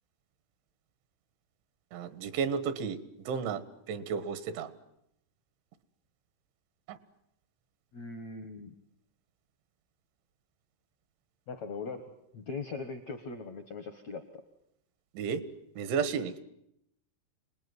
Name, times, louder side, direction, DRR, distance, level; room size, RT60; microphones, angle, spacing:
voice 1, 1.9-4.7 6.9-7.0 15.2-15.4 15.8-16.4, right 6 dB, 85° right, 13 dB, 3.9 m, -33 dB
voice 2, 7.9-8.7 11.5-14.4, left 4 dB, 75° left, 8 dB, 1.6 m, -40 dB
27.5 x 20.0 x 9.5 m, 0.79 s
omnidirectional pair, 5.3 m